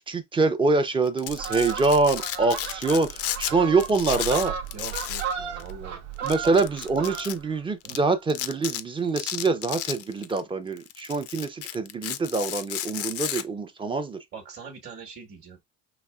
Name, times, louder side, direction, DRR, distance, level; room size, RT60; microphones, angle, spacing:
voice 1, 0.1-4.5 6.2-14.2, right 3 dB, 15° right, 0.5 m, -25 dB
Domestic sounds home sounds, 1.1-3.5 3.8-5.3 5.6-5.7 6.3-7.3 7.9-8.0 8.3-8.8 9.2-10.4 10.8-13.4, left 12 dB, 45° left, 0.4 m, -33 dB
Fowl, 1.3-7.6 8.0-8.2, right 8 dB, 85° right, 1.0 m, -35 dB
voice 2, 4.7-6.0 6.4-6.5 7.8-8.0 14.3-15.6, right 6 dB, 30° right, 1.2 m, -42 dB
4.0 x 2.9 x 2.3 m
supercardioid pair, 105°, 35 cm